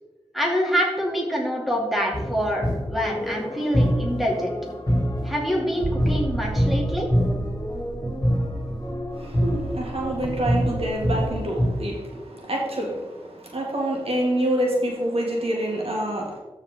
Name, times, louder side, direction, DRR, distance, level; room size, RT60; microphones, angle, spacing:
voice 1, 0.3-4.5 5.2-7.1, equal, ahead, -2 dB, 2.6 m, -25 dB
sound 1, 2.1-11.7, equal, 35° left, 2.4 m, -26 dB
sound 2, 5.8-11.4, right 2 dB, 25° right, 0.5 m, -34 dB
voice 2, 9.1-16.4, right 1 dB, 65° right, -2 dB, 2.1 m, -27 dB
13.0 x 4.7 x 3.7 m, 1.2 s
cardioid pair, 45°, 11 cm